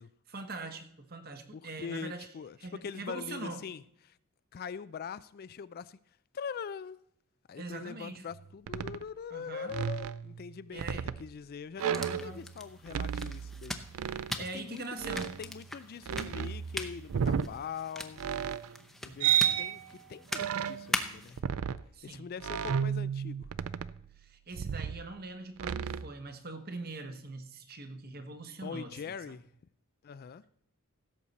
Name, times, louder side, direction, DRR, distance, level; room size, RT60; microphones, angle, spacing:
voice 1, 0.3-2.3 2.6-3.6 7.6-8.3 9.3-9.8 10.7-11.1 12.1-12.5 14.4-15.4 19.1-19.5 21.9-22.3 24.2-29.0 29.3-29.4, right 3 dB, 45° right, 1.2 m, -42 dB
voice 2, 1.5-3.8 4.1-4.2 4.5-6.0 6.3-7.0 7.5-10.9 11.2-18.2 19.0-21.4 22.0-23.5 28.6-29.5 30.0-30.4, left 6 dB, 45° left, 0.3 m, -43 dB
sound 1, 8.3-8.4 8.7-9.0 9.7-11.3 11.8-12.6 12.9-14.3 15.0-15.6 16.0-17.5 18.2-18.8 19.2-19.9 20.3-20.9 21.4-21.8 22.4-24.2 24.5-25.1 25.6-26.1, right 8 dB, 75° right, 0.4 m, -33 dB
sound 2, 11.8-21.4, left 1 dB, ahead, 0.7 m, -41 dB
16.0 x 7.3 x 4.1 m
head